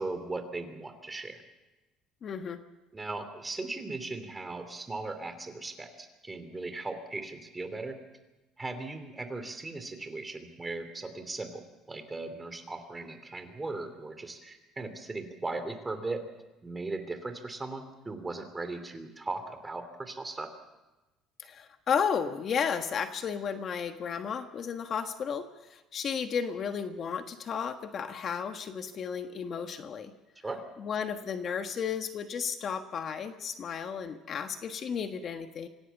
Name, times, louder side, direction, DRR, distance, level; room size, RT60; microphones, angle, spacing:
voice 1, 0.0-1.4 2.9-8.0 8.6-16.2 16.6-20.5 30.4-30.6, right 3 dB, 15° right, 8 dB, 3.1 m, -38 dB
voice 2, 2.2-2.6 21.4-30.1 30.8-35.7, left 7 dB, 45° left, 7 dB, 1.4 m, -33 dB
25.5 x 17.0 x 7.2 m, 1.1 s
cardioid pair, 120°, 0 cm